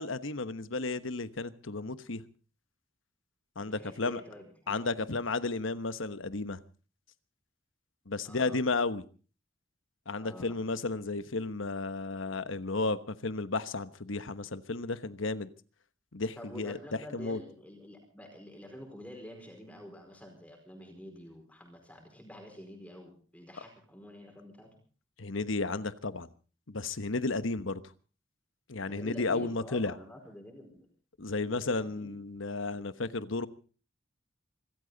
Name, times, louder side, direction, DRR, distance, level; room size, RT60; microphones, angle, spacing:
voice 1, 0.0-2.2 3.6-4.2 4.7-6.6 8.1-9.0 10.1-15.5 16.1-16.8 17.1-17.4 25.2-26.3 26.7-27.8 28.7-29.9 31.2-33.5, left 3 dB, 75° left, 12 dB, 1.2 m, -33 dB
voice 2, 3.7-5.2 8.2-8.6 10.2-10.6 16.4-24.7 28.9-30.9 31.5-32.1, left 1 dB, 5° left, 2 dB, 4.7 m, -48 dB
25.5 x 14.0 x 4.0 m, 0.39 s
head